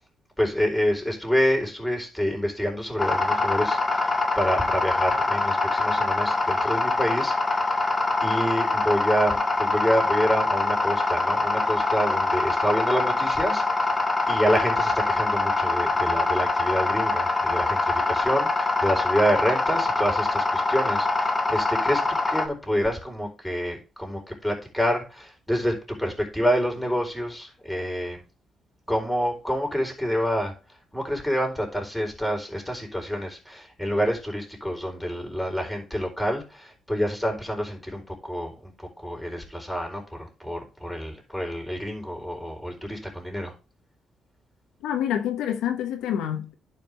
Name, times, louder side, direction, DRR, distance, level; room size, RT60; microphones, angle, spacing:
voice 1, 0.4-7.7 8.2-13.9 14.3-22.0 22.3-28.2 28.9-30.5 30.9-38.7 39.0-43.5, equal, ahead, 4.0 m, -27 dB
sound 1, 3.0-22.5, left 3 dB, 25° left, 1.6 m, -24 dB
voice 2, 44.8-46.5, left 10 dB, 90° left, 1.2 m, -27 dB
11.0 x 5.1 x 3.5 m
cardioid pair, 90°, 0 cm